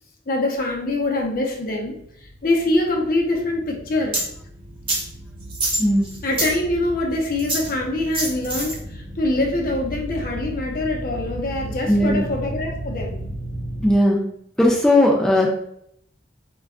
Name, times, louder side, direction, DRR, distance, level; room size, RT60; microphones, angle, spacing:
voice 1, 0.3-2.0 2.4-4.2 6.2-13.2, left 2 dB, 55° left, 0 dB, 0.6 m, -24 dB
sound 1, 0.6-14.0, right 1 dB, 80° right, 0.5 m, -35 dB
sound 2, 4.1-4.3 4.9-5.0 5.5-6.6 7.4-7.7 8.1-8.8, right 2 dB, 30° right, 0.8 m, -25 dB
voice 2, 5.8-6.1 11.9-12.3 13.8-14.3 14.6-15.5, left 1 dB, 5° left, -3 dB, 0.4 m, -17 dB
2.2 x 2.1 x 3.5 m, 0.71 s
head